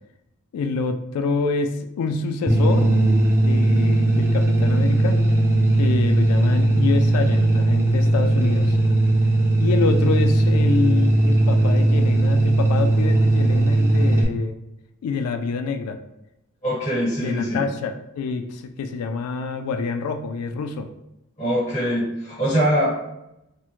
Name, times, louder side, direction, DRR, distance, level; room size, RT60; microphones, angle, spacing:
voice 1, 0.5-2.9 3.4-5.2 5.8-8.8 9.6-14.6 15.0-16.0 17.2-20.9, left 4 dB, 80° left, 11 dB, 0.3 m, -26 dB
sound 1, 2.5-14.2, right 2 dB, 10° right, 0.3 m, -18 dB
voice 2, 16.6-17.6 21.4-22.9, equal, 30° left, -7 dB, 1.3 m, -23 dB
3.4 x 2.1 x 2.9 m, 0.86 s
head